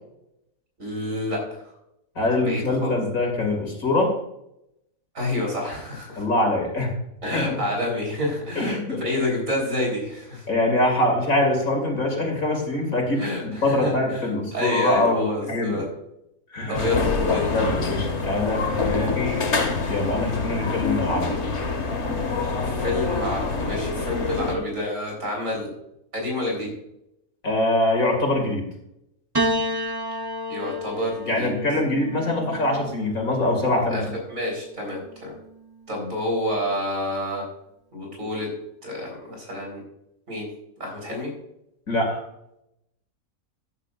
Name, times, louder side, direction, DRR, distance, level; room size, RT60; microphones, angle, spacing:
voice 1, 0.8-1.7 2.4-2.9 5.1-6.3 7.2-10.5 13.1-14.2 14.5-15.8 16.7-17.5 22.6-25.7 26.1-26.7 30.5-31.5 33.9-34.0 34.3-35.3 35.9-37.4 37.9-38.5 38.8-39.8 40.3-40.5 40.8-41.3, left 1 dB, 65° right, -1 dB, 4.3 m, -28 dB
voice 2, 2.1-4.1 6.2-6.9 7.3-7.6 8.6-9.0 10.5-15.8 16.5-16.8 17.5-19.4 19.9-21.3 27.4-28.6 31.3-34.0 41.9-42.2, left 2 dB, 70° left, 2 dB, 3.0 m, -23 dB
sound 1, 16.7-24.5, left 4 dB, 55° left, 1.6 m, -26 dB
Piano, 29.3-33.8 34.9-35.6, equal, 25° right, 0.6 m, -30 dB
14.0 x 9.7 x 2.5 m, 0.82 s
omnidirectional pair, 1.5 m